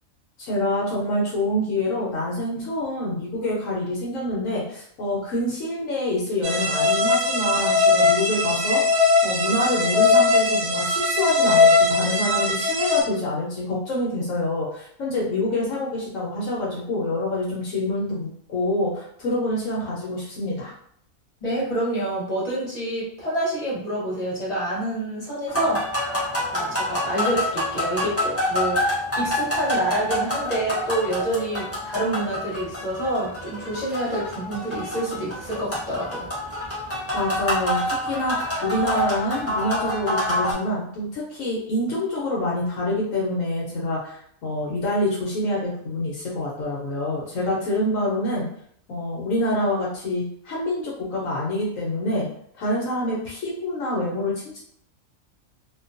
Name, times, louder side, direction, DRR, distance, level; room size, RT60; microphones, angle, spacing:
voice 1, 0.4-8.8 9.2-20.7 37.1-48.5 48.9-52.3 52.5-54.6, left 1 dB, 70° left, -4 dB, 1.0 m, -26 dB
sound 1, 6.4-13.0, left 3 dB, 70° right, 0.9 m, -20 dB
voice 2, 21.4-26.0 26.4-36.3, right 1 dB, 30° left, -7 dB, 1.0 m, -27 dB
sound 2, 25.5-40.5, left 1 dB, 15° left, 0.6 m, -27 dB
2.5 x 2.2 x 2.5 m, 0.67 s
omnidirectional pair, 1.4 m